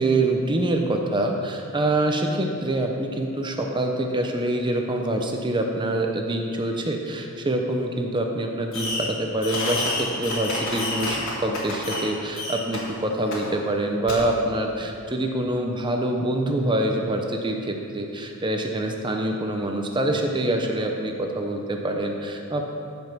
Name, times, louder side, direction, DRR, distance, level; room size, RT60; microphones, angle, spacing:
voice 1, 0.0-22.7, right 1 dB, 20° right, 3 dB, 0.6 m, -25 dB
Fireworks, 8.7-9.1 9.4-12.1 12.3-12.8 13.3-13.4 14.1-14.2, left 2 dB, 65° left, 2.9 m, -29 dB
15.0 x 5.4 x 6.0 m, 2.6 s
head